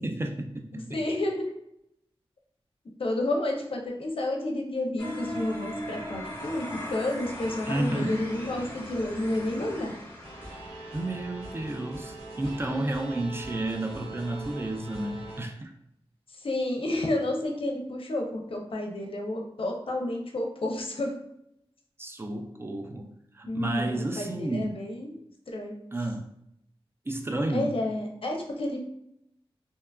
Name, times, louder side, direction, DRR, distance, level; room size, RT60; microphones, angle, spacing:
voice 1, 0.0-1.0 7.7-8.2 10.9-15.7 22.0-24.8 25.9-26.3 27.1-27.7, right 2 dB, 25° right, 4 dB, 0.4 m, -31 dB
voice 2, 0.9-1.5 3.0-9.9 16.3-21.1 23.5-25.1 25.5-25.7 27.5-28.8, left 1 dB, 65° left, 1 dB, 0.5 m, -30 dB
sound 1, 5.0-11.9, left 1 dB, 25° left, 0.9 m, -39 dB
sound 2, 10.2-15.4, right 2 dB, 85° right, 1.4 m, -42 dB
2.8 x 2.3 x 2.3 m, 0.77 s
wide cardioid pair, 65°, 10 cm